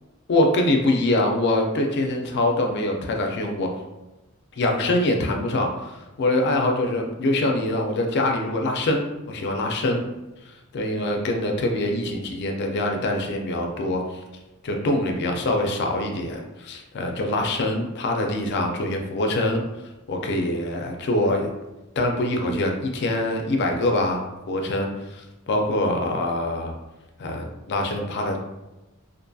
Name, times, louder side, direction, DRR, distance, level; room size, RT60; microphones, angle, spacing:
voice 1, 0.3-3.7 4.6-10.0 10.5-14.2 14.6-19.6 20.1-21.5 22.0-24.9 25.5-26.7 27.2-28.4, left 1 dB, 50° left, 2 dB, 0.4 m, -24 dB
2.6 x 2.5 x 2.2 m, 1.0 s
head